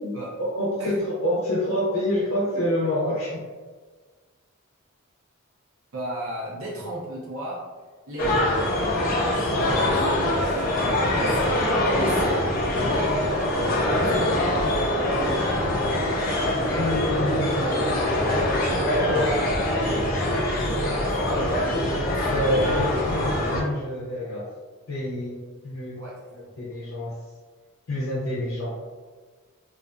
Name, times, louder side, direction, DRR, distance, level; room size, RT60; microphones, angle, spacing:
voice 1, 0.0-3.5 16.8-18.0 19.0-19.3 20.3-21.6 22.2-24.5 24.9-26.0 26.3-27.2 27.9-28.9, left 1 dB, 90° left, -7 dB, 0.6 m, -28 dB
voice 2, 5.9-7.6 8.1-10.9 11.1-11.6 12.1-12.5 12.7-13.1 13.8-15.5 19.1-20.1 20.5-22.8 26.0-26.2, right 1 dB, 70° right, -4 dB, 0.6 m, -36 dB
sound 1, 8.2-23.6, left 1 dB, 40° left, 0.5 m, -23 dB
2.5 x 2.4 x 2.2 m, 1.4 s
head